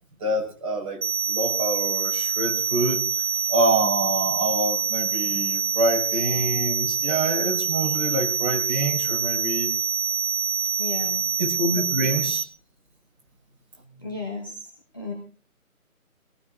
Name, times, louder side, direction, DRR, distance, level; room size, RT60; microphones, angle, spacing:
voice 1, 0.2-3.1 3.5-9.7 11.4-12.4, right 2 dB, 25° right, -5 dB, 5.6 m, -26 dB
sound 1, 1.0-12.4, right 6 dB, 55° right, 1.2 m, -26 dB
voice 2, 10.8-11.3 14.0-15.1, left 3 dB, 15° left, -3 dB, 1.0 m, -34 dB
24.5 x 18.5 x 2.6 m, 0.39 s
figure-of-eight pair, 170°, 44 cm